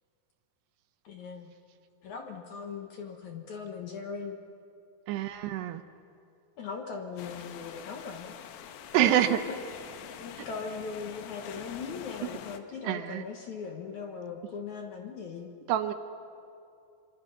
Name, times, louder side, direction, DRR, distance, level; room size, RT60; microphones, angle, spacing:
voice 1, 1.0-1.5 2.0-4.4 6.6-8.4 9.0-9.5 10.2-15.5, left 5 dB, 65° left, 3 dB, 2.0 m, -39 dB
voice 2, 5.1-5.8 8.9-9.4 10.4-10.5 12.8-13.2 15.7-15.9, right 12 dB, 75° right, 9 dB, 2.8 m, -26 dB
sound 1, 7.2-12.6, left 9 dB, 80° left, 3.2 m, -45 dB
26.0 x 25.5 x 5.9 m, 2.6 s
omnidirectional pair, 5.1 m